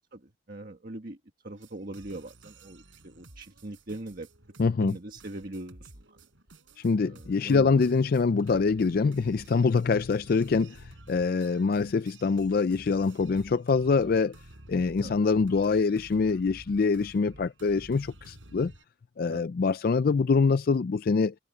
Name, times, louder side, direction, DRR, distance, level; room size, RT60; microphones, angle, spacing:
voice 1, 0.5-1.2 1.4-4.3 4.6-5.9 7.0-7.9 15.0-15.2 19.3-19.4, right 1 dB, 50° right, 1.5 m, -41 dB
sound 1, 1.6-18.8, right 1 dB, 85° right, 4.8 m, -52 dB
voice 2, 4.6-5.0 6.8-14.4 14.7-18.7 19.2-21.3, left 4 dB, 50° left, 0.4 m, -25 dB
head